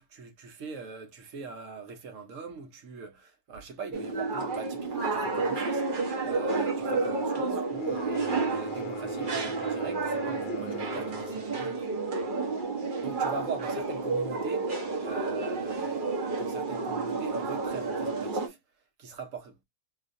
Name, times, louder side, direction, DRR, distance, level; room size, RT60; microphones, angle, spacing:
voice 1, 0.0-5.9 6.2-11.9 13.0-18.6 19.0-19.6, right 5 dB, 60° right, 1.1 m, -41 dB
sound 1, 3.9-18.5, right 3 dB, 40° right, 0.9 m, -30 dB
sound 2, 7.7-11.6, left 6 dB, 75° left, 1.0 m, -43 dB
4.3 x 2.5 x 2.5 m
omnidirectional pair, 1.6 m